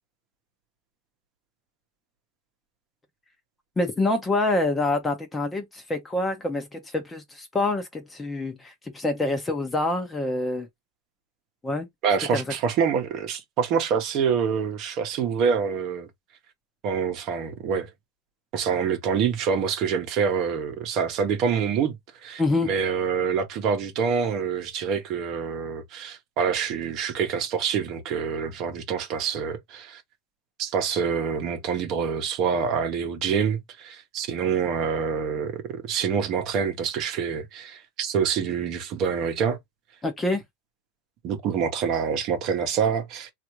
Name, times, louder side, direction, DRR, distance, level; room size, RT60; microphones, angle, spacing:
voice 1, 3.8-10.7 11.6-11.9 12.3-12.4 22.4-22.7 40.0-40.4, left 2 dB, 10° left, 0.8 m, -26 dB
voice 2, 12.0-16.1 16.8-17.9 18.5-22.0 22.2-30.0 30.6-39.6 41.2-43.3, right 6 dB, 45° right, 0.9 m, -26 dB
3.2 x 2.5 x 3.0 m
supercardioid pair, 140°, 0 cm